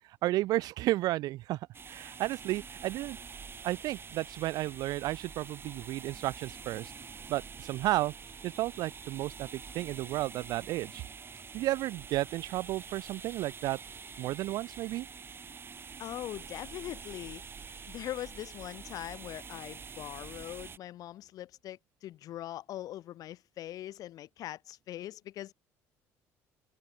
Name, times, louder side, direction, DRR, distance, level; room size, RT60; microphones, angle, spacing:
voice 1, 0.2-1.6 1.9-3.2 3.6-6.9 7.3-8.1 8.4-11.0 11.5-13.8 14.2-15.1, right 16 dB, 70° right, 0.4 m, -32 dB
sound 1, 1.7-20.8, right 5 dB, 35° right, 2.2 m, -46 dB
voice 2, 16.0-25.5, left 13 dB, 65° left, 0.8 m, -42 dB
open air
supercardioid pair, 85°, 7 cm